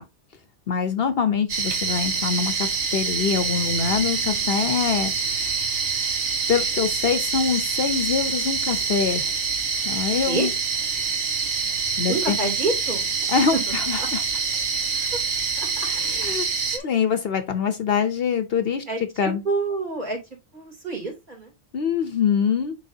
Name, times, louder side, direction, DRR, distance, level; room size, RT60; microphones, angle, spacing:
voice 1, 0.7-5.7 6.5-9.3 9.9-10.5 12.0-12.4 13.3-14.2 15.9-16.5 16.8-18.8 19.2-19.4 21.7-22.8, left 6 dB, 60° left, 0.9 m, -24 dB
sound 1, 1.5-16.8, right 5 dB, 80° right, 1.5 m, -26 dB
voice 2, 4.6-4.9 10.3-10.5 12.1-13.1 13.5-13.6 14.0-14.1 14.9-15.1 15.6-15.7 16.2-16.3 16.7-16.9 18.9-20.2 20.5-21.5, right 3 dB, 40° right, 3.1 m, -28 dB
10.5 x 3.5 x 2.7 m
omnidirectional pair, 1.2 m